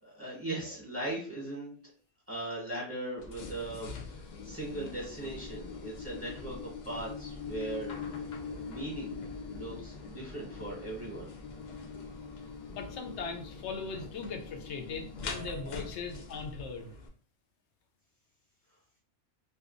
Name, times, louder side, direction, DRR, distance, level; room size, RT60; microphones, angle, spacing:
voice 1, 0.0-1.7 2.3-7.9 8.5-9.2 9.5-11.3, right 2 dB, 15° right, -5 dB, 0.9 m, -39 dB
sound 1, 3.2-17.1, left 4 dB, 60° left, 0.5 m, -43 dB
voice 2, 12.7-16.9, left 4 dB, 90° left, 5 dB, 0.9 m, -39 dB
2.6 x 2.3 x 2.5 m, 0.43 s
omnidirectional pair, 1.1 m